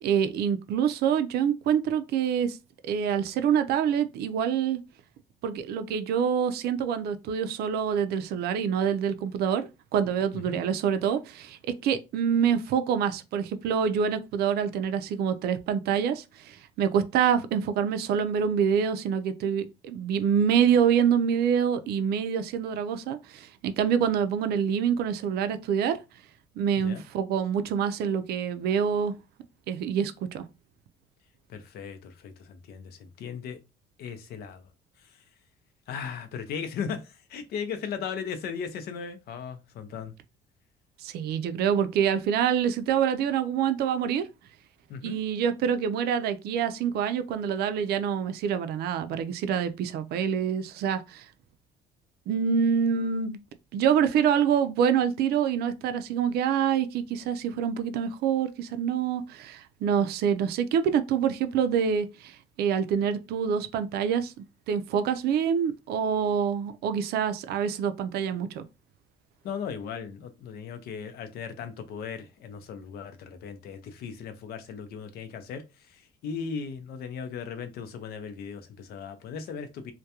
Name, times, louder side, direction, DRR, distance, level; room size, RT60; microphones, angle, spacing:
voice 1, 0.0-2.6 2.8-4.8 5.4-26.0 26.6-29.1 29.7-30.4 41.0-44.2 45.0-51.3 52.3-53.4 53.7-64.3 64.7-68.6, right 8 dB, 70° right, 0.4 m, -26 dB
voice 2, 31.5-33.6 34.0-34.6 35.0-35.2 35.9-40.1 44.9-45.2 69.4-79.9, left 6 dB, 70° left, 0.6 m, -37 dB
2.3 x 2.2 x 2.8 m
cardioid pair, 110°, 17 cm